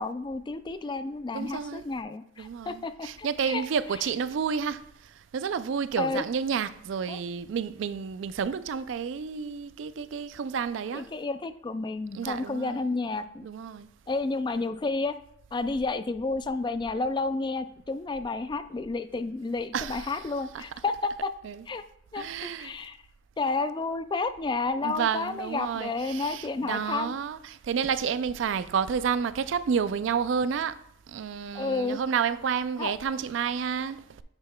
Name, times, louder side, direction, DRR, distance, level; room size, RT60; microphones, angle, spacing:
voice 1, 0.0-3.6 6.0-6.2 7.1-7.2 10.9-13.5 14.1-15.2 15.5-21.3 21.7-21.8 22.1-23.0 23.4-27.1 31.5-32.0 32.8-32.9, left 3 dB, 25° left, 0.3 m, -31 dB
voice 2, 1.3-1.8 2.4-4.9 5.3-11.1 12.1-12.8 13.4-13.9 19.7-20.0 20.5-20.6 21.4-21.6 22.2-22.7 24.8-30.8 31.1-34.2, right 7 dB, 75° right, 0.3 m, -30 dB
8.7 x 5.5 x 2.2 m
head